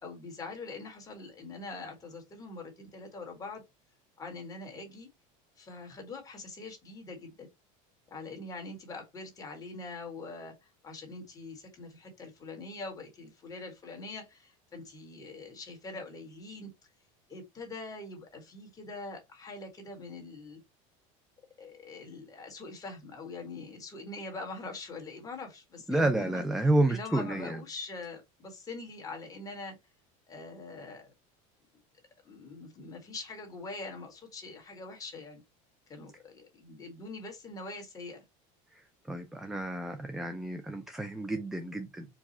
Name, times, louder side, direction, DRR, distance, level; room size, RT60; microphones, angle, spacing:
voice 1, 0.0-3.6 4.2-5.1 5.6-7.5 8.1-16.7 17.3-20.6 21.6-26.4 26.9-29.8 30.3-31.1 32.2-35.4 35.9-38.2, left 3 dB, 20° left, 1.5 m, -43 dB
voice 2, 25.9-27.6 39.1-42.1, right 2 dB, ahead, 0.4 m, -30 dB
4.7 x 2.3 x 4.1 m
cardioid pair, 155°, 17 cm